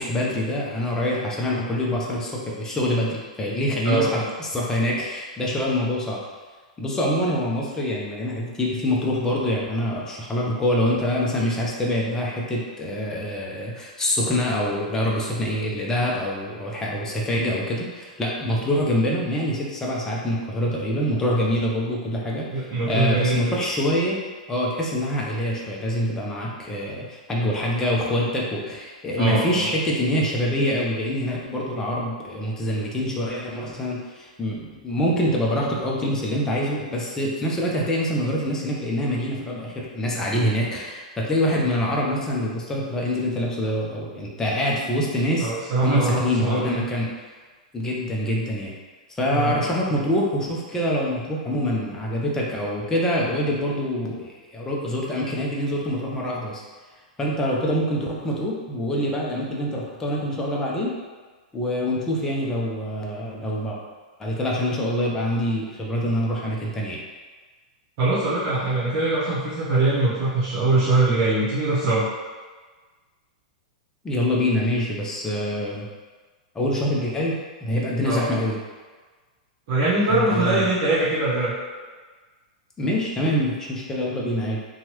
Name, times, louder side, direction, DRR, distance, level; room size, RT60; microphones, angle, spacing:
voice 1, 0.0-6.2 6.8-24.2 24.5-45.5 45.8-47.1 47.7-48.7 49.2-56.6 57.2-60.9 61.5-63.8 64.2-67.0 74.0-75.9 76.5-78.6 80.1-80.7 82.8-84.6, equal, 15° left, -3 dB, 0.6 m, -25 dB
voice 2, 3.8-4.3 22.5-23.6 29.2-29.7 45.4-46.9 49.3-49.6 68.0-72.1 78.0-78.2 79.7-81.5, right 2 dB, 55° right, -10 dB, 1.0 m, -22 dB
2.8 x 2.3 x 3.0 m, 1.4 s
hypercardioid pair, 115°, 4 cm